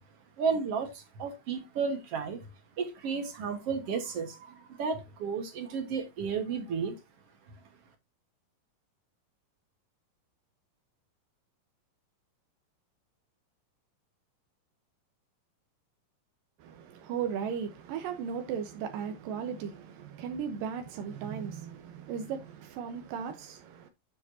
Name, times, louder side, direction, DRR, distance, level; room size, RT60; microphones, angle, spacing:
voice 1, 0.4-2.4 2.8-7.0, right 5 dB, 55° right, 2.0 m, -33 dB
voice 2, 16.6-23.9, right 7 dB, 85° right, 2.6 m, -36 dB
9.8 x 6.9 x 2.7 m
omnidirectional pair, 3.9 m